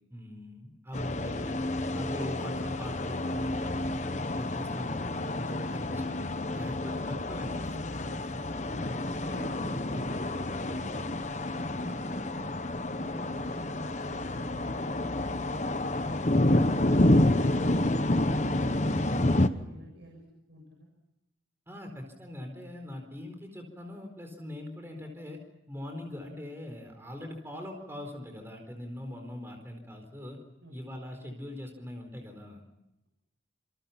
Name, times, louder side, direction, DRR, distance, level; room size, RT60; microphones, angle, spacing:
voice 1, 0.1-1.6 1.9-6.2 6.5-8.4 21.7-25.4 25.7-30.4 30.7-32.6, left 1 dB, 15° right, 4 dB, 4.3 m, -42 dB
sound 1, 0.9-19.5, left 1 dB, 40° left, 1.1 m, -29 dB
voice 2, 9.3-11.1 11.7-12.5 12.9-15.4 15.7-17.4 17.8-20.2 20.5-20.9 30.6-30.7, equal, 65° right, 0 dB, 6.8 m, -49 dB
28.0 x 27.0 x 5.8 m, 0.89 s
head